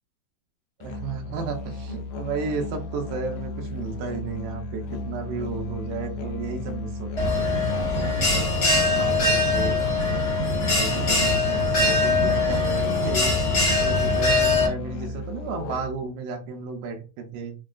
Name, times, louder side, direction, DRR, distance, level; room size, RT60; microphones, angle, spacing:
Musical instrument, 0.8-16.1, left 3 dB, 80° left, 2.3 m, -35 dB
voice 1, 0.8-7.4 7.7-8.2 8.8-9.8 10.6-13.3 13.6-17.5, right 5 dB, 80° right, 3 dB, 2.2 m, -33 dB
Bell, 7.2-14.7, left 3 dB, 45° left, 1.3 m, -22 dB
6.2 x 2.2 x 2.4 m, 0.33 s
omnidirectional pair, 4.0 m